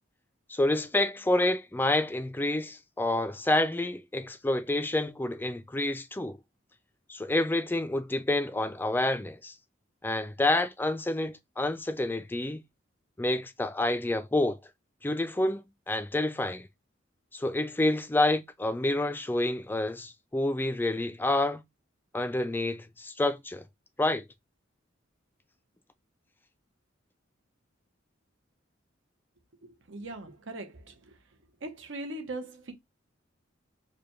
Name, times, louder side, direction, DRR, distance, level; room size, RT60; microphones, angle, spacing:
voice 1, 0.5-6.4 7.1-9.5 10.0-12.6 13.2-14.6 15.0-16.7 17.3-21.6 22.1-23.6 24.0-24.2, left 2 dB, 10° left, 0.3 m, -28 dB
voice 2, 29.9-30.9 31.6-32.7, right 2 dB, 75° right, 0.9 m, -39 dB
4.9 x 2.2 x 3.0 m
head